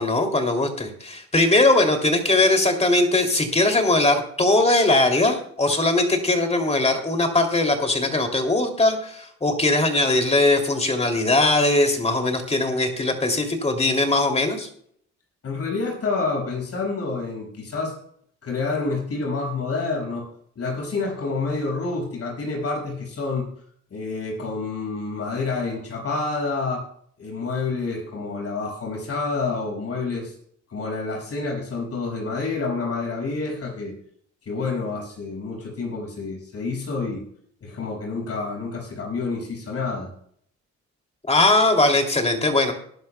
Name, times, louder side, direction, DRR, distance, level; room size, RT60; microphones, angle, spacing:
voice 1, 0.0-14.7 41.3-42.7, left 2 dB, 20° left, 4 dB, 2.9 m, -20 dB
voice 2, 15.4-17.9 18.4-20.3 20.5-23.5 23.9-26.8 27.2-30.3 30.7-33.9 34.4-37.2 37.6-40.1, left 3 dB, 50° left, -1 dB, 6.1 m, -28 dB
20.0 x 11.0 x 2.3 m, 0.63 s
cardioid pair, 90°, 30 cm